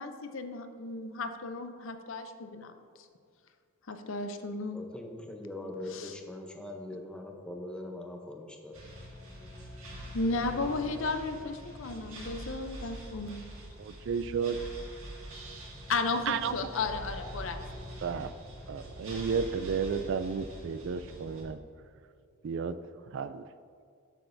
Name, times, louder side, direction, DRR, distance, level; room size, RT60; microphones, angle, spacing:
voice 1, 0.0-2.7 3.9-4.8 5.9-6.1 10.1-13.4 15.9-17.6, left 3 dB, 60° left, 7 dB, 0.6 m, -34 dB
voice 2, 4.7-8.8, left 1 dB, 5° left, 2 dB, 0.7 m, -41 dB
sound 1, 8.7-21.4, equal, 70° right, 2.0 m, -44 dB
voice 3, 13.8-14.6 16.3-16.7 18.0-18.3 18.7-21.6 22.4-22.8 23.1-23.4, right 6 dB, 55° right, 13 dB, 0.3 m, -32 dB
13.5 x 6.0 x 2.6 m, 2.2 s
head